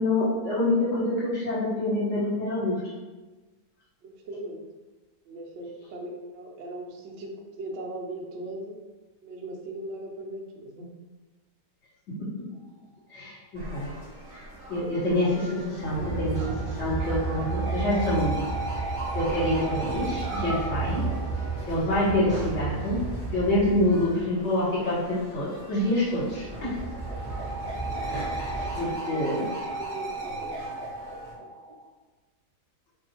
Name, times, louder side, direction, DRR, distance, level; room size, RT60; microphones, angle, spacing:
voice 1, 0.0-2.8 12.1-12.3 13.1-13.9 14.7-18.4 18.7-18.9 19.1-21.0 21.7-23.0 23.3-26.7 27.9-29.5, left 1 dB, 55° left, -9 dB, 1.6 m, -26 dB
voice 2, 4.0-4.6 5.2-8.7 9.2-10.9 28.5-30.6, right 1 dB, 75° right, -1 dB, 0.6 m, -39 dB
sound 1, 13.5-31.3, right 1 dB, 30° right, 1.5 m, -43 dB
Train, 15.8-24.3 26.1-28.8, right 4 dB, 30° left, 1.1 m, -33 dB
sound 2, 16.2-22.4 25.9-31.8, right 2 dB, 50° right, 0.9 m, -36 dB
2.7 x 2.4 x 2.8 m, 1.2 s
omnidirectional pair, 1.7 m